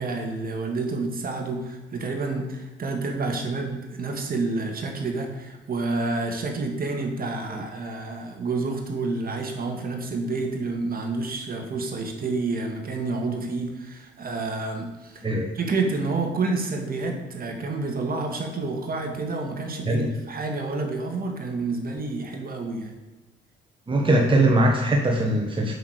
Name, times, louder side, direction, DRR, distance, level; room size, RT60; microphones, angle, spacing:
voice 1, 0.0-15.2 15.5-22.9, right 3 dB, 45° right, 3 dB, 2.1 m, -29 dB
voice 2, 23.9-25.7, right 1 dB, 25° right, 1 dB, 1.4 m, -21 dB
8.0 x 6.2 x 6.6 m, 1.1 s
cardioid pair, 90°, 20 cm